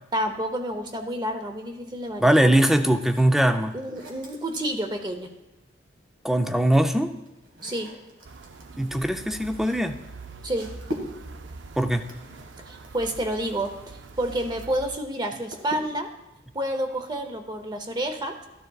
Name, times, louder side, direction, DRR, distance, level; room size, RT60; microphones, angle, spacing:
voice 1, 0.1-2.5 3.7-5.3 7.6-7.9 10.4-10.7 12.7-16.1 16.5-18.5, right 1 dB, 20° right, 6 dB, 0.7 m, -29 dB
voice 2, 2.2-3.7 6.2-7.2 8.8-10.0 11.8-12.0, right 1 dB, ahead, 7 dB, 0.3 m, -21 dB
sound 1, 2.5-5.4 6.4-14.6 14.9-16.2, equal, 85° right, 1.7 m, -43 dB
sound 2, 8.2-15.0, right 4 dB, 70° right, 0.5 m, -44 dB
13.5 x 10.0 x 2.3 m, 1.0 s
head